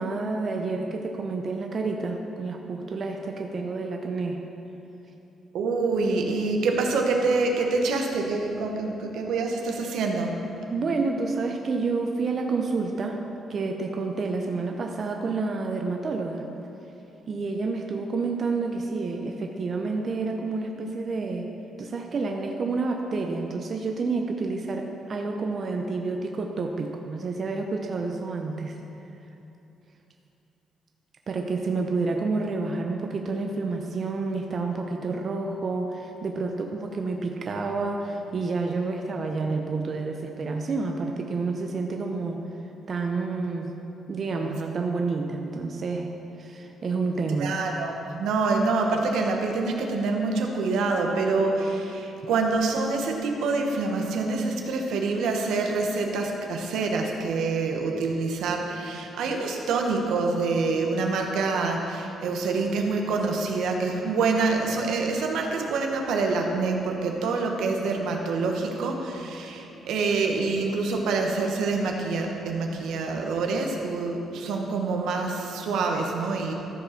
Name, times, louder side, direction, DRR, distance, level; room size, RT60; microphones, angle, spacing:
voice 1, 0.0-4.4 10.7-13.2 13.5-16.5 17.3-21.5 21.8-28.8 31.3-42.4 42.9-43.7 44.1-46.1 46.4-47.5, right 3 dB, 45° right, 2 dB, 0.7 m, -29 dB
voice 2, 5.5-10.4 47.4-76.5, right 3 dB, 80° right, 2 dB, 1.1 m, -26 dB
13.5 x 4.9 x 5.8 m, 2.9 s
cardioid pair, 90°, 0 cm